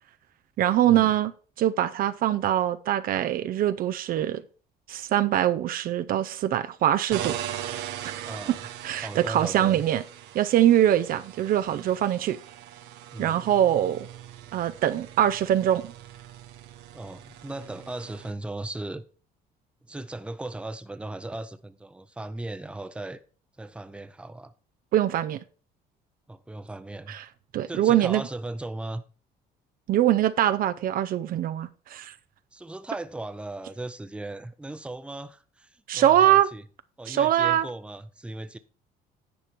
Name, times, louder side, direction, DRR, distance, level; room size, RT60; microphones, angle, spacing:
voice 1, 0.6-1.3 1.6-4.4 4.9-7.4 8.0-8.3 8.8-10.0 10.3-12.4 13.2-14.1 14.5-15.9 24.9-25.4 27.1-27.2 27.5-28.2 29.9-32.1 35.9-36.5 37.1-37.7, right 11 dB, 60° right, 0.5 m, -23 dB
sound 1, 7.1-18.3, right 11 dB, 90° right, 0.9 m, -40 dB
voice 2, 8.2-8.7 9.0-9.8 13.1-13.5 16.9-19.0 19.9-23.2 23.6-24.5 26.3-27.2 27.7-29.0 32.5-36.6 37.0-38.6, right 2 dB, 5° right, 0.6 m, -37 dB
10.0 x 5.0 x 4.4 m
cardioid pair, 110°, 17 cm